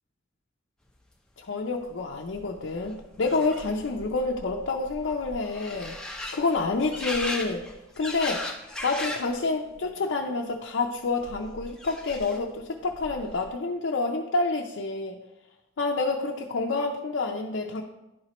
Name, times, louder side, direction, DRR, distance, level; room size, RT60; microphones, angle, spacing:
voice 1, 1.4-6.0 6.3-7.6 8.0-8.5 8.8-15.2 15.8-17.8, left 3 dB, 75° left, 0 dB, 0.6 m, -28 dB
sound 1, 1.8-1.9 2.1-9.4 9.7-10.3 11.2-12.6 12.9-13.5, left 1 dB, 5° left, 0.6 m, -38 dB
11.0 x 4.3 x 3.0 m, 0.98 s
head